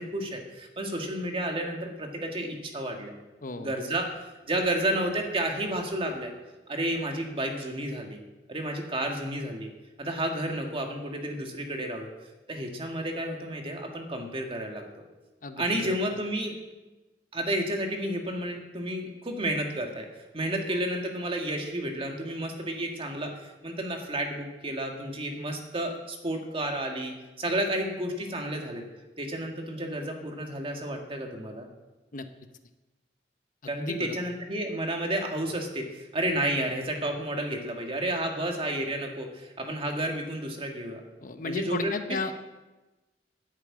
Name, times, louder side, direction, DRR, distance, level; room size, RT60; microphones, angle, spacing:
voice 1, 0.0-3.1 3.6-4.1 4.4-6.3 6.7-8.2 8.5-9.7 10.0-12.1 12.5-14.8 15.6-16.6 17.3-20.1 20.3-28.8 29.2-31.7 33.7-41.0 41.4-42.2, right 1 dB, 30° right, 3 dB, 2.0 m, -31 dB
voice 2, 3.4-3.7 15.4-15.6 32.1-32.3 33.6-34.1 41.2-42.3, left 3 dB, 50° left, 8 dB, 0.9 m, -33 dB
11.0 x 8.8 x 8.6 m, 1.1 s
head